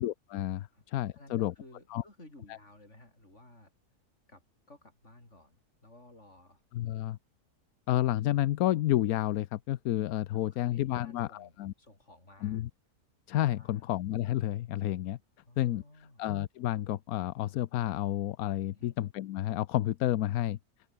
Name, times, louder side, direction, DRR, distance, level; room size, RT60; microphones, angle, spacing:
voice 1, 0.0-1.5 1.9-2.0 6.7-7.2 7.9-11.7 12.4-12.7 13.3-15.2 15.6-15.8 16.2-20.6, left 14 dB, 75° left, 1.1 m, -30 dB
voice 2, 1.1-3.7 4.3-6.6 10.3-12.6 13.6-13.9 15.4-16.2 18.7-19.0, left 2 dB, 45° left, 6.8 m, -56 dB
open air
omnidirectional pair, 1.7 m